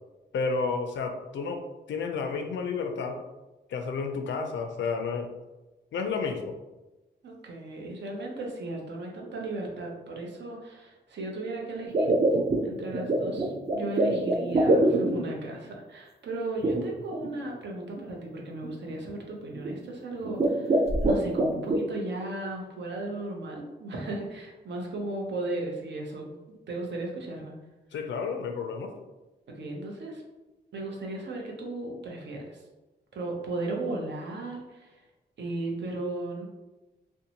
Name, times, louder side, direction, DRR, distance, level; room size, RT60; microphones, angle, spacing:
voice 1, 0.3-1.6 1.9-3.2 3.7-5.3 5.9-6.5 27.9-28.9, left 5 dB, 85° left, 5 dB, 0.4 m, -31 dB
voice 2, 7.2-12.1 12.6-26.3 26.7-27.5 29.6-30.2 30.7-32.6 33.1-35.0 35.4-36.5, right 2 dB, 75° right, 0 dB, 0.7 m, -36 dB
sound 1, 11.9-15.5 16.6-17.3 18.0-18.1 18.6-18.9 19.5-19.9 20.2-21.8, right 1 dB, 35° right, 0.4 m, -25 dB
2.6 x 2.1 x 2.8 m, 1.1 s
cardioid pair, 80°, 18 cm